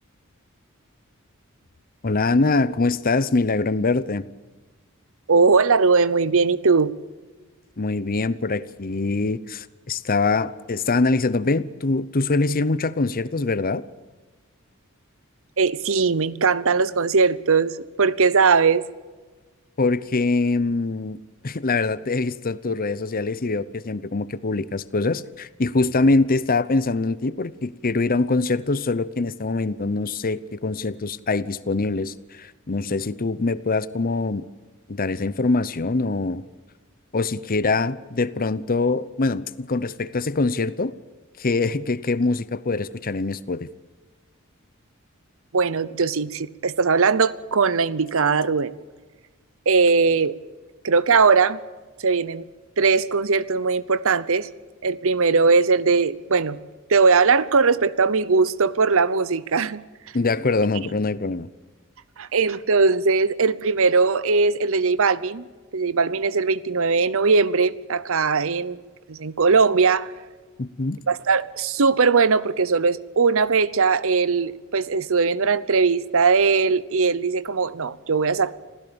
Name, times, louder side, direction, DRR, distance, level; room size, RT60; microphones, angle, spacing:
voice 1, 2.0-4.2 7.8-13.8 19.8-21.2 21.4-34.4 34.9-36.4 37.1-40.9 41.4-43.7 60.1-61.5 70.6-71.0, left 3 dB, 40° left, 0.8 m, -23 dB
voice 2, 5.3-6.9 15.6-17.7 18.0-18.8 45.5-48.8 49.7-50.4 50.8-51.6 52.0-52.4 52.8-54.5 54.8-56.6 56.9-59.8 62.2-65.5 65.7-68.8 69.1-70.1 71.1-78.5, right 4 dB, 65° right, 0.8 m, -20 dB
26.5 x 16.0 x 7.0 m
head